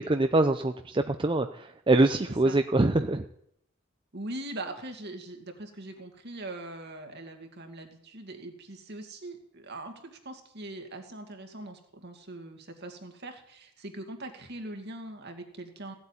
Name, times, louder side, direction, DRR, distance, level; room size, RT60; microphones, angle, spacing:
voice 1, 0.0-3.2, right 2 dB, 25° right, 7 dB, 0.5 m, -24 dB
voice 2, 4.1-15.9, right 2 dB, 55° right, 5 dB, 2.3 m, -41 dB
16.5 x 8.2 x 10.0 m, 0.74 s
head